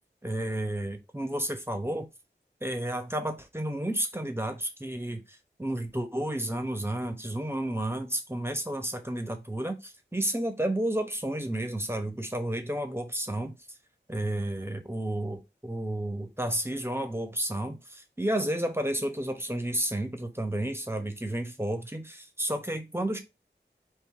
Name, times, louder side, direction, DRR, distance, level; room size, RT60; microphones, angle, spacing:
voice 1, 0.2-2.1 2.6-13.6 14.1-23.2, right 1 dB, 10° right, 1.0 m, -31 dB
4.0 x 2.7 x 4.8 m
wide cardioid pair, 45°, 19 cm